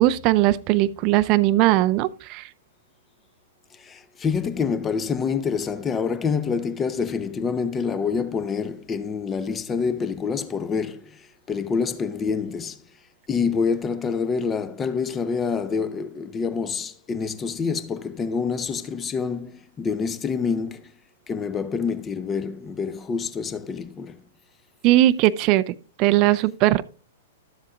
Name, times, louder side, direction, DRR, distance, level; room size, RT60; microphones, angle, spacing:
voice 1, 0.0-2.5 24.8-26.8, right 15 dB, 40° right, 0.4 m, -19 dB
voice 2, 3.7-12.8 13.3-20.9 21.3-24.3, left 5 dB, 20° left, 0.8 m, -27 dB
12.5 x 7.4 x 2.5 m
hypercardioid pair, 110°, 0 cm